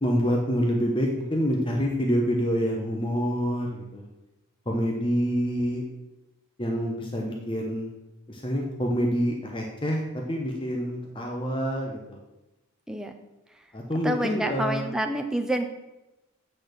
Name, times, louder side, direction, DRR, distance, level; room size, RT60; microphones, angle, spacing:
voice 1, 0.0-4.1 4.7-5.8 6.6-7.9 8.3-12.2 13.7-14.9, equal, 25° left, 0 dB, 0.9 m, -27 dB
voice 2, 14.0-15.7, right 1 dB, 5° right, 4 dB, 0.6 m, -28 dB
8.6 x 4.2 x 6.5 m, 1.0 s
head